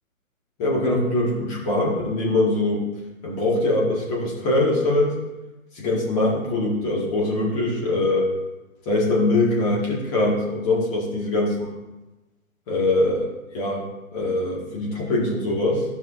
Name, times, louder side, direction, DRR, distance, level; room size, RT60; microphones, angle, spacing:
voice 1, 0.6-2.9 3.2-5.1 5.7-8.3 8.9-11.7 12.7-13.9 14.1-15.8, left 2 dB, 25° left, -4 dB, 1.9 m, -22 dB
14.5 x 5.5 x 2.6 m, 1.0 s
figure-of-eight pair, 140°, 43 cm